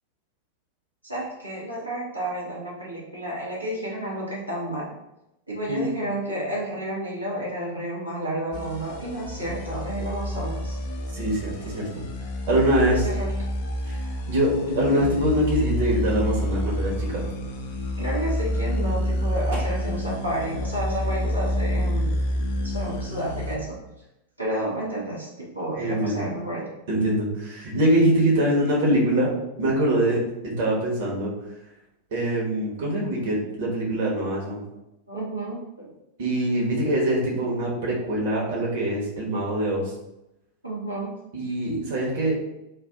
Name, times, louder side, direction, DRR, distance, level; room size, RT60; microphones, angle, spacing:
voice 1, 1.0-4.9 5.5-10.8 12.8-13.3 18.0-22.2 22.6-23.8 24.4-26.7 35.1-35.9 40.6-41.1, right 1 dB, 85° right, -6 dB, 1.0 m, -31 dB
sound 1, 8.5-23.6, left 1 dB, 50° left, 0.5 m, -28 dB
voice 2, 11.1-11.9 12.5-13.0 13.9-17.2 19.5-19.6 25.7-26.3 26.9-29.3 29.6-31.3 32.1-34.6 36.2-39.8 41.3-42.3, right 1 dB, 50° right, -3 dB, 1.1 m, -23 dB
3.2 x 2.5 x 3.6 m, 0.89 s
figure-of-eight pair, 90°, 0 cm